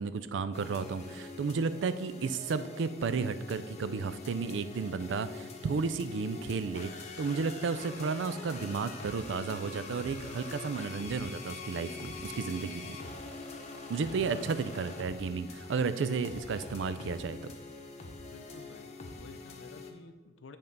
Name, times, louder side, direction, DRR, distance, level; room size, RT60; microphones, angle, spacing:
voice 1, 0.0-6.9 7.2-13.0 13.9-17.5, right 5 dB, 70° right, 13 dB, 0.4 m, -33 dB
sound 1, 0.5-19.9, left 3 dB, 35° left, 0.8 m, -44 dB
voice 2, 13.9-14.6 18.2-20.6, left 3 dB, 85° left, 10 dB, 0.5 m, -52 dB
7.8 x 3.5 x 5.3 m, 1.3 s
head